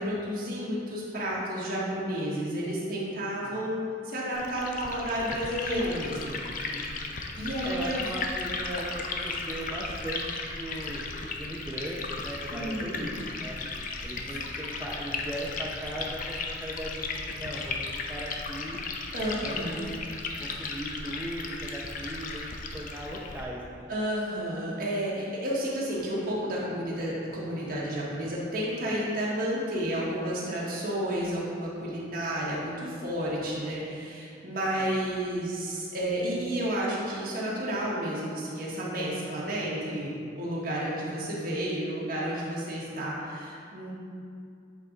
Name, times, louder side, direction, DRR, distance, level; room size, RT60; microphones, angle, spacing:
voice 1, 0.0-6.3 7.4-8.1 12.5-13.2 13.9-14.1 19.1-19.8 23.9-43.9, equal, 55° right, -6 dB, 1.5 m, -31 dB
Liquid, 4.3-23.4, left 3 dB, 50° left, 0.5 m, -36 dB
voice 2, 6.6-7.1 7.6-13.6 14.0-18.8 19.4-19.9 20.4-23.9 34.8-34.9, right 1 dB, 10° right, -5 dB, 0.5 m, -38 dB
7.9 x 4.1 x 3.8 m, 2.3 s
head